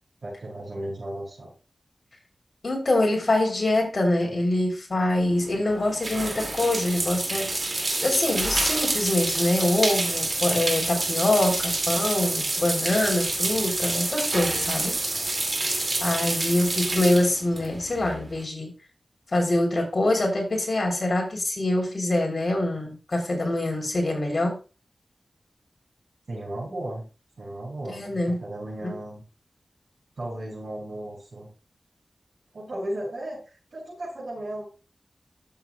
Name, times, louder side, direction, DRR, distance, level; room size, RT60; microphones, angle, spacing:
voice 1, 0.2-1.5 26.3-27.0 27.4-29.2 30.2-31.5 32.5-34.6, right 1 dB, 70° right, 5.1 m, -35 dB
voice 2, 2.6-7.5 8.0-15.0 16.0-18.7 19.3-24.6 27.9-28.4 28.8-28.9, left 1 dB, 50° left, 3.4 m, -24 dB
sound 1, 5.2-18.4, right 2 dB, 50° right, 2.2 m, -28 dB
13.0 x 7.1 x 2.3 m
wide cardioid pair, 60°, 0 cm